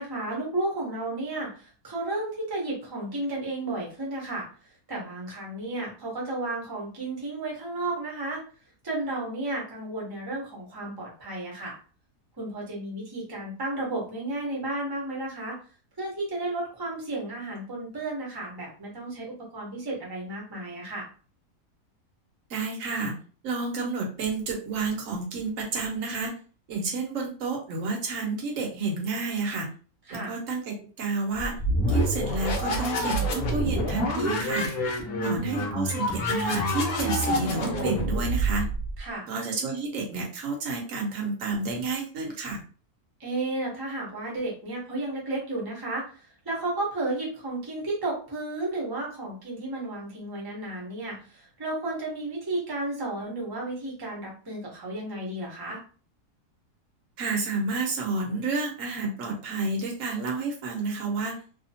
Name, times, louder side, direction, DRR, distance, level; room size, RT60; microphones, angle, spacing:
voice 1, 0.0-4.5 4.9-8.4 8.8-11.7 12.4-15.6 16.0-21.1 30.1-30.3 35.0-35.7 39.0-39.3 43.2-55.8, right 2 dB, 20° right, -3 dB, 0.8 m, -33 dB
voice 2, 22.5-23.1 23.4-26.3 26.7-29.7 30.1-31.5 31.9-34.7 35.2-38.7 39.3-42.6 57.2-61.4, right 3 dB, 60° right, 0 dB, 1.2 m, -30 dB
sound 1, 31.4-39.0, equal, 60° left, 0.6 m, -27 dB
2.8 x 2.3 x 2.7 m, 0.39 s
omnidirectional pair, 1.7 m